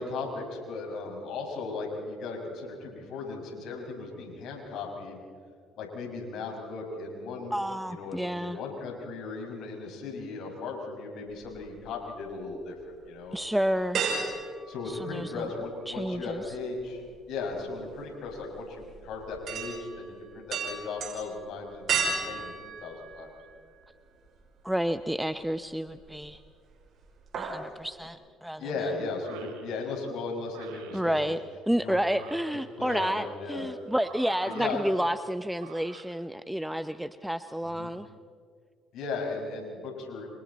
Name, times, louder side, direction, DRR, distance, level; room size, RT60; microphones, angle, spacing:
voice 1, 0.0-5.2 5.8-7.6 7.8-12.7 13.1-13.4 14.7-22.5 22.8-23.3 28.6-31.2 31.8-32.0 32.8-33.7 34.4-34.8 37.6-37.9 38.9-40.3, left 3 dB, 70° left, 1 dB, 6.0 m, -36 dB
voice 2, 7.5-8.6 13.3-14.0 14.9-15.5 15.9-16.5 24.6-26.4 27.4-28.7 30.9-31.4 31.7-38.1, equal, 5° right, 12 dB, 0.7 m, -30 dB
sound 1, 11.3-12.3 12.8-12.9 13.9-15.7 15.9-23.9 24.3-24.4 25.8-26.4 26.7-26.9 27.1-27.7 28.0-28.1, right 5 dB, 55° right, 6.1 m, -34 dB
sound 2, 29.2-29.6 30.5-31.0 32.0-33.2 33.9-35.1 35.5-36.1, right 9 dB, 85° right, 2.6 m, -48 dB
29.5 x 28.0 x 4.2 m, 2.2 s
supercardioid pair, 65°, 0 cm